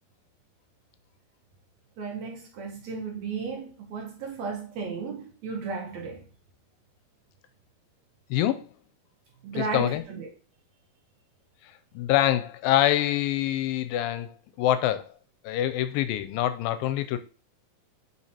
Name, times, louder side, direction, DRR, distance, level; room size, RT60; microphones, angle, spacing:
voice 1, 2.0-6.2 9.4-10.3, right 5 dB, 65° right, 2.0 m, -34 dB
voice 2, 8.3-8.7 9.5-10.0 12.0-15.1 15.4-17.2, left 13 dB, 85° left, 2.3 m, -25 dB
6.8 x 5.2 x 2.9 m
omnidirectional pair, 4.0 m